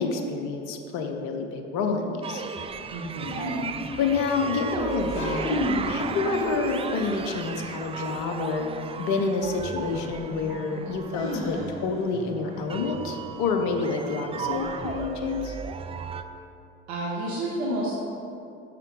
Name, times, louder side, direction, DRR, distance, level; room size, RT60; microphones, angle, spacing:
voice 1, 0.0-2.4 4.0-5.5 5.9-8.7 9.0-15.6, left 4 dB, 60° left, 5 dB, 0.9 m, -28 dB
sound 1, 2.2-16.2, right 5 dB, 20° right, 0.4 m, -35 dB
voice 2, 2.9-3.4 16.9-18.0, right 1 dB, 60° right, -6 dB, 1.6 m, -30 dB
sound 2, 3.2-4.4 5.0-5.9 6.4-7.3 9.2-9.3 11.1-12.0, left 1 dB, 40° left, 2.0 m, -32 dB
9.2 x 6.6 x 3.8 m, 2.6 s
hypercardioid pair, 70°, 33 cm